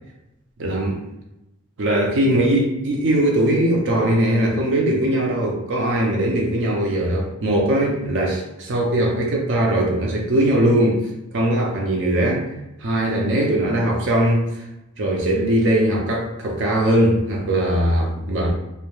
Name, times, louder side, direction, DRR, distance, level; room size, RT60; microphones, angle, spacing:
voice 1, 0.6-1.0 1.8-11.1 11.3-12.4 12.8-14.6 15.0-18.5, right 1 dB, 60° right, 0 dB, 0.5 m, -20 dB
2.2 x 2.1 x 3.0 m, 0.92 s
head